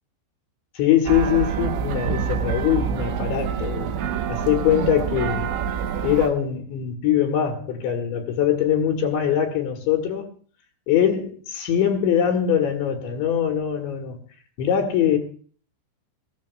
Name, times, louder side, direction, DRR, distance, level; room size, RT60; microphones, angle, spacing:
voice 1, 0.8-3.9 4.3-5.5 6.0-10.3 10.9-14.2 14.6-15.2, left 9 dB, 75° left, 3.7 m, -22 dB
sound 1, 1.1-6.3, right 8 dB, 75° right, 3.3 m, -26 dB
23.5 x 16.0 x 2.4 m
omnidirectional pair, 5.6 m